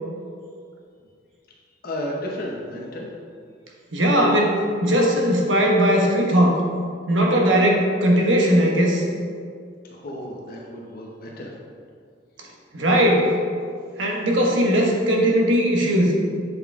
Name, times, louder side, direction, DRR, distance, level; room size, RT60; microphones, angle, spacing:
voice 1, 1.8-3.1 9.8-11.5, left 1 dB, 50° left, -2 dB, 0.8 m, -33 dB
voice 2, 3.9-6.6 7.1-9.0 12.7-13.3 14.0-16.2, equal, 80° right, -1 dB, 1.3 m, -19 dB
8.1 x 5.4 x 3.5 m, 2.2 s
head